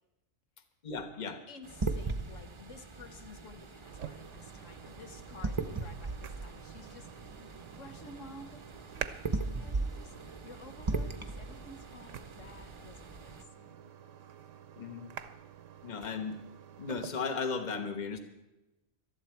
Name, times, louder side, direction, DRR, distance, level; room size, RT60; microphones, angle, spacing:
voice 1, 0.8-1.4 14.8-15.1 15.8-16.4 16.8-18.2, left 5 dB, 35° left, 6 dB, 1.3 m, -35 dB
voice 2, 1.5-7.4 7.8-13.9, left 2 dB, 75° left, 6 dB, 1.5 m, -53 dB
sound 1, 1.6-13.4, right 3 dB, 30° right, 0.7 m, -39 dB
sound 2, 3.8-17.1, right 9 dB, 75° right, 1.1 m, -48 dB
18.5 x 12.5 x 4.6 m, 1.0 s
omnidirectional pair, 1.3 m